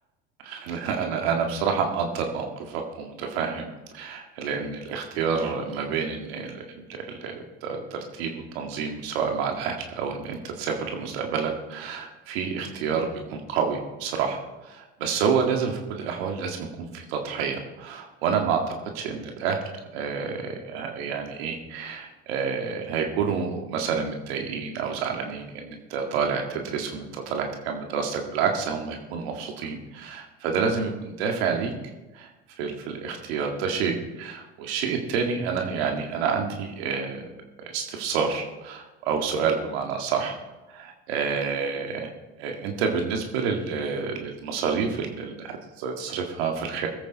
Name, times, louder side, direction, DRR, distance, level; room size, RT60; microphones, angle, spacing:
voice 1, 0.4-3.7 3.9-19.6 19.9-31.7 32.1-37.3 37.6-40.4 40.7-42.1 42.4-46.9, right 6 dB, 85° right, 3 dB, 2.0 m, -29 dB
21.5 x 8.5 x 4.1 m, 1.1 s
supercardioid pair, 90°, 30 cm